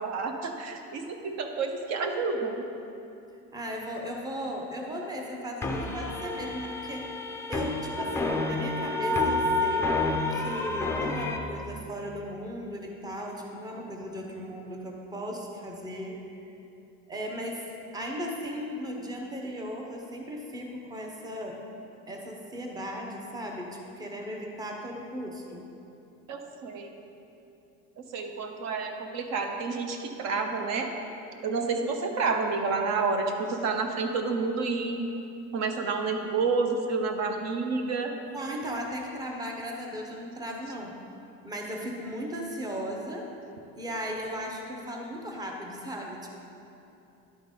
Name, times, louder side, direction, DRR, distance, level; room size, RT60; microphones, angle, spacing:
voice 1, 0.0-2.7 26.3-26.9 28.1-30.9 31.4-35.1 35.5-38.1, right 4 dB, 55° right, 5 dB, 0.9 m, -29 dB
voice 2, 3.5-7.1 7.5-10.0 10.3-16.2 17.1-21.6 22.1-25.7 38.3-41.0 41.4-43.3 43.8-46.3, equal, 10° right, 0 dB, 0.8 m, -36 dB
sound 1, 5.6-11.4, left 2 dB, 10° left, 0.4 m, -29 dB
11.5 x 3.9 x 5.1 m, 2.8 s
cardioid pair, 150°, 33 cm